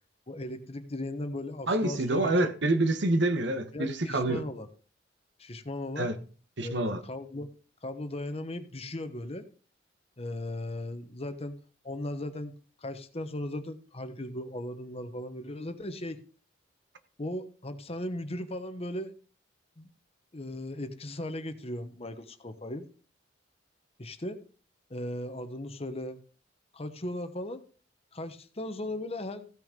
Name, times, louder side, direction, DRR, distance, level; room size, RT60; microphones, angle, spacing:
voice 1, 0.3-2.3 3.7-4.7 5.4-6.1 6.6-7.5 7.8-9.5 10.2-11.6 11.8-16.2 17.2-19.1 19.8-19.9 20.3-22.9 24.0-24.4 24.9-26.2 26.7-27.6 28.1-29.5, left 1 dB, 30° left, 1.1 m, -37 dB
voice 2, 1.7-4.4 6.0-6.2 6.6-7.0, right 2 dB, 65° right, 1.3 m, -27 dB
15.5 x 6.2 x 5.2 m
head